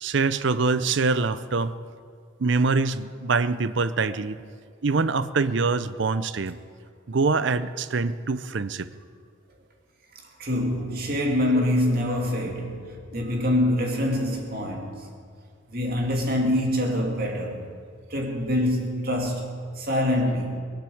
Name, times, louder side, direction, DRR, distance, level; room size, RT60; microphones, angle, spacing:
voice 1, 0.0-1.8 2.4-4.4 4.8-6.6 7.1-8.9, right 4 dB, 65° right, 0.6 m, -24 dB
voice 2, 10.4-15.1 15.7-17.7 18.1-19.5 19.8-20.6, left 1 dB, 45° right, 2.4 m, -25 dB
19.0 x 9.1 x 7.8 m
head